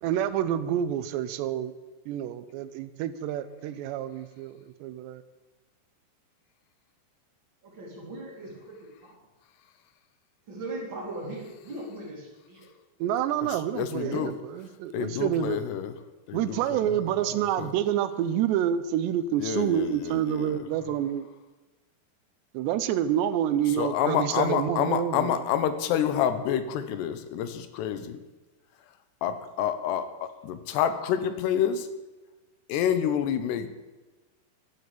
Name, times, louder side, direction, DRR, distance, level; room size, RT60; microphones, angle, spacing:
voice 1, 0.0-1.7 2.1-5.2 13.0-15.6 16.3-21.3 22.5-25.3, right 10 dB, 80° right, 14 dB, 2.9 m, -28 dB
voice 2, 7.6-9.1 10.5-12.7 13.9-14.2 17.1-17.3, right 2 dB, 25° right, -2 dB, 4.0 m, -39 dB
voice 3, 13.4-14.3 14.9-16.0 16.3-17.1 17.6-17.7 19.4-20.6 23.7-28.2 29.2-31.9 32.7-33.7, left 9 dB, 75° left, 11 dB, 2.9 m, -28 dB
13.0 x 11.0 x 8.4 m, 1.2 s
omnidirectional pair, 5.1 m